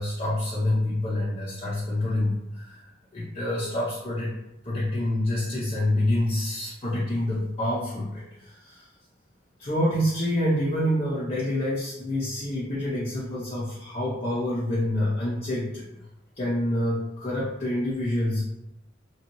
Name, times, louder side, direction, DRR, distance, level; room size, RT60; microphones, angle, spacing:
voice 1, 0.0-2.8 3.1-4.3 4.6-8.8 9.6-15.8 16.4-18.4, left 1 dB, 35° left, -7 dB, 0.6 m, -27 dB
3.0 x 2.7 x 3.0 m, 0.87 s
head